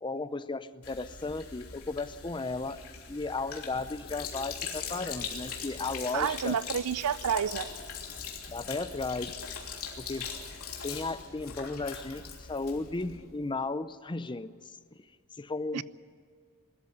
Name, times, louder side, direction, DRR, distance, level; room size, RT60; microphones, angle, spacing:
voice 1, 0.0-2.8 3.1-6.6 8.5-9.4 10.0-10.4 10.8-14.5 15.4-15.8, left 3 dB, 20° left, 0.6 m, -35 dB
Sink (filling or washing), 0.8-13.2, left 6 dB, 80° left, 3.1 m, -41 dB
sound 1, 3.0-13.5, left 2 dB, 60° left, 2.9 m, -55 dB
voice 2, 6.1-7.7 15.7-15.8, right 8 dB, 85° right, 0.5 m, -29 dB
21.0 x 13.5 x 9.9 m
head